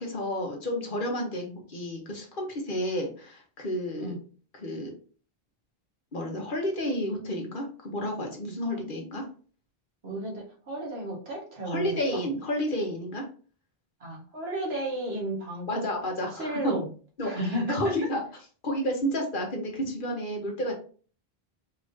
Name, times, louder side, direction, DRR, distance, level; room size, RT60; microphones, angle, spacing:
voice 1, 0.0-1.4 1.7-4.2 4.6-4.9 6.1-9.3 11.6-13.3 15.7-16.7 17.2-18.2 18.6-20.7, equal, 55° left, 1 dB, 1.3 m, -31 dB
voice 2, 10.0-12.2 14.0-15.8 16.3-16.9 17.2-17.9, right 1 dB, 80° right, -1 dB, 1.8 m, -33 dB
4.7 x 3.6 x 2.7 m, 0.40 s
omnidirectional pair, 1.0 m